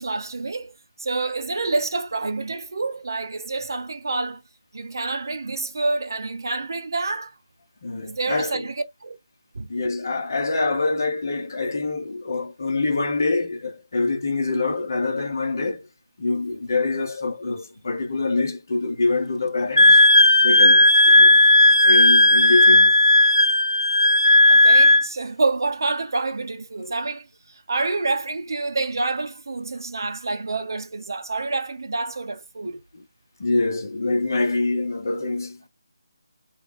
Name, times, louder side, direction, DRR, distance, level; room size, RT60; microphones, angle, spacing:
voice 1, 0.0-4.4 4.7-7.3 8.0-9.2 9.5-9.7 24.5-32.8, right 3 dB, 55° right, 0.7 m, -28 dB
voice 2, 7.8-8.6 9.7-15.9 16.2-20.0 20.4-21.4 21.8-22.9 32.9-33.0 33.4-35.7, left 3 dB, 45° left, 1.0 m, -25 dB
Wind instrument woodwind instrument, 19.8-25.1, left 2 dB, 80° left, 0.3 m, -14 dB
3.4 x 2.4 x 3.5 m
figure-of-eight pair, 155°, 2 cm